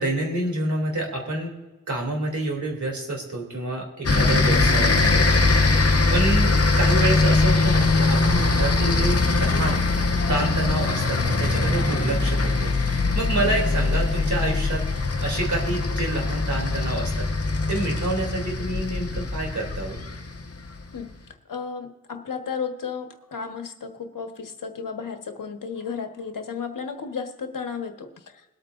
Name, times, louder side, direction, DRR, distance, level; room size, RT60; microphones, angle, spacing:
voice 1, 0.0-1.5 1.9-5.3 6.1-9.8 10.3-14.8 15.2-17.3 17.7-20.0, right 1 dB, 55° right, 0 dB, 3.3 m, -28 dB
sound 1, 4.0-20.8, left 3 dB, 40° left, 1.5 m, -22 dB
voice 2, 21.5-28.1, left 6 dB, 65° left, 5 dB, 1.5 m, -33 dB
22.0 x 8.9 x 2.7 m, 1.1 s
wide cardioid pair, 120°, 35 cm